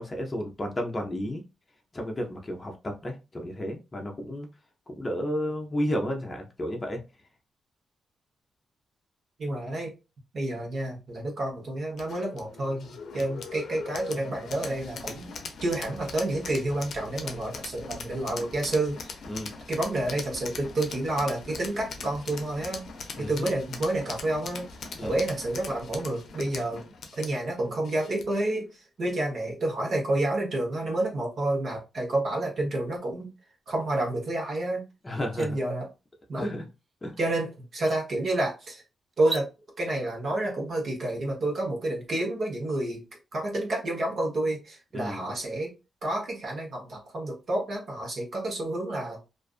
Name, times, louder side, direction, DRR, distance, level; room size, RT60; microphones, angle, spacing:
voice 1, 0.0-1.4 1.9-4.5 4.9-7.0 19.3-19.5 23.2-23.5 24.9-25.2 35.0-35.5 36.4-36.7 37.0-37.1 44.9-45.3, equal, 25° left, 0.6 m, -32 dB
voice 2, 9.4-9.9 10.3-12.9 13.1-15.3 15.6-19.2 19.7-22.8 23.2-24.7 25.0-26.8 27.2-33.3 33.7-34.8 35.4-35.9 36.3-36.6 37.2-38.8 39.2-39.5 39.8-43.0 43.3-45.7 46.0-49.2, right 1 dB, 55° right, 1.0 m, -29 dB
sound 1, 12.0-28.5, left 4 dB, 70° left, 0.5 m, -41 dB
sound 2, 34.5-34.6 35.1-35.5 37.1-37.2 37.7-38.0 39.1-39.5, right 4 dB, 35° right, 0.4 m, -37 dB
2.5 x 2.4 x 2.4 m
cardioid pair, 95°, 0 cm